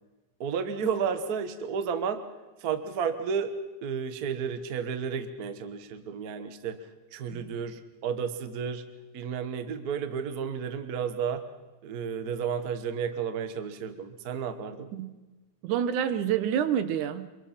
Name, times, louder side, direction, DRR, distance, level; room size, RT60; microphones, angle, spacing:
voice 1, 0.4-2.2 2.6-3.5 3.8-6.8 7.1-8.8 9.1-11.4 11.8-14.9, right 6 dB, 50° right, 9 dB, 1.2 m, -32 dB
voice 2, 15.6-17.3, right 9 dB, 85° right, 12 dB, 2.6 m, -28 dB
26.0 x 23.0 x 5.8 m, 1.1 s
omnidirectional pair, 3.4 m